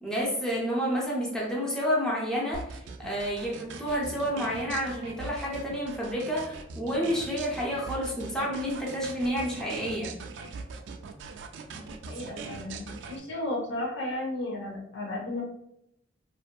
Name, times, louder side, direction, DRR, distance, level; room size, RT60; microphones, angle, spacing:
voice 1, 0.0-10.1, equal, 5° left, -5 dB, 0.6 m, -30 dB
sound 1, 2.5-13.2, right 4 dB, 85° right, 0.3 m, -41 dB
voice 2, 11.7-15.4, left 1 dB, 85° left, -1 dB, 0.7 m, -34 dB
2.6 x 2.5 x 2.2 m, 0.77 s
head